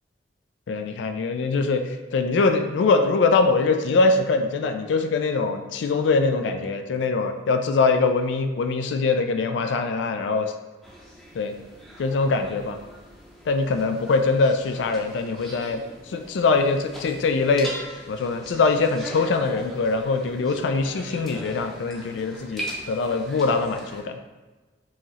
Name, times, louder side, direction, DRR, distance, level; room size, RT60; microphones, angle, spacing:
voice 1, 0.7-10.5 11.3-11.6 12.0-12.8 13.5-17.7 18.1-24.2, left 4 dB, 85° left, 7 dB, 0.3 m, -23 dB
sound 1, 10.8-24.0, equal, ahead, 0.6 m, -41 dB
4.7 x 2.8 x 3.0 m, 1.2 s
head